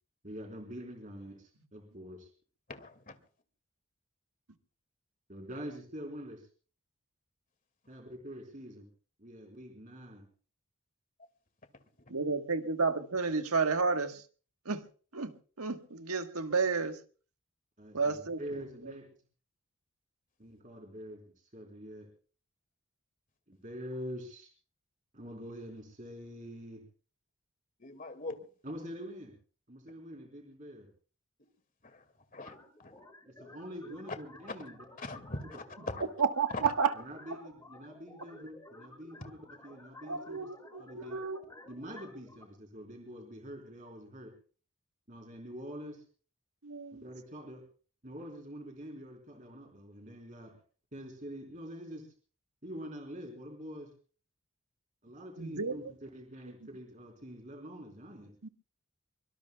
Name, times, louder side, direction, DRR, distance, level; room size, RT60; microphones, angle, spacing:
voice 1, 0.2-2.3 5.3-6.5 7.9-8.9 9.2-10.3 17.8-19.1 20.4-22.1 23.5-24.5 25.1-26.8 28.6-29.3 29.7-30.9 33.3-34.8 35.9-36.1 36.9-40.5 40.8-41.2 41.7-44.3 45.1-46.0 46.9-47.6 48.0-50.5 50.9-52.1 52.6-53.9 55.0-58.3, equal, 35° right, 3.8 m, -45 dB
voice 2, 2.7-3.1 27.8-28.5 31.8-33.0 35.0-36.1 36.5-36.7, left 2 dB, 40° left, 2.1 m, -42 dB
voice 3, 12.1-14.2 14.6-14.8 15.1-15.3 15.6-17.0 17.9-18.4 36.2-36.9 40.1-41.4 46.6-47.0 55.4-55.8 58.4-58.5, right 5 dB, 90° right, 1.5 m, -31 dB
sound 1, 32.4-42.4, left 2 dB, 15° left, 3.3 m, -54 dB
24.0 x 24.0 x 2.3 m
head